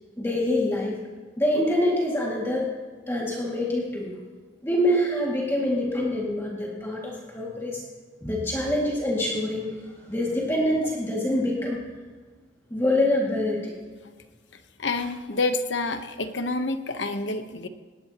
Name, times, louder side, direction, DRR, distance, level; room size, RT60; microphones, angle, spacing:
voice 1, 0.2-1.0 1.4-2.7 3.1-4.1 4.6-7.8 8.2-9.7 10.1-11.8 12.7-13.7, left 1 dB, 15° left, -4 dB, 2.1 m, -25 dB
voice 2, 14.5-17.7, left 3 dB, 75° left, 8 dB, 1.0 m, -28 dB
18.5 x 18.5 x 2.9 m, 1.4 s
head